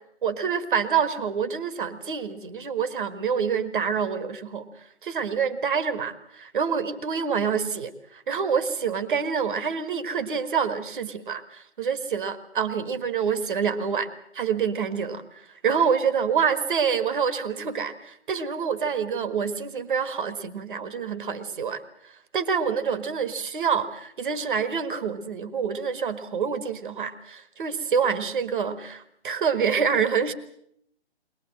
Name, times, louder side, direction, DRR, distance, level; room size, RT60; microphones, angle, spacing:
voice 1, 0.2-4.6 5.0-30.3, right 6 dB, 50° right, 10 dB, 1.6 m, -27 dB
23.5 x 19.0 x 7.6 m, 0.72 s
figure-of-eight pair, 140°, 33 cm